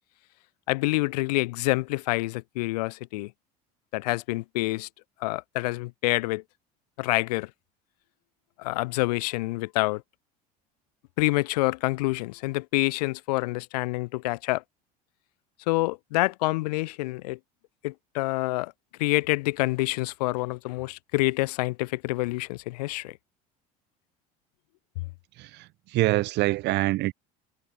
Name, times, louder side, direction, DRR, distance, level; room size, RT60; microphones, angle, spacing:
voice 1, 0.7-3.3 3.9-4.9 5.2-6.4 7.0-7.5 8.6-10.0 11.2-14.6 15.7-17.4 17.8-18.7 19.0-23.2, left 21 dB, 85° left, 2.7 m, -27 dB
voice 2, 25.4-27.1, right 19 dB, 60° right, 4.1 m, -25 dB
supercardioid pair, 105°, 20 cm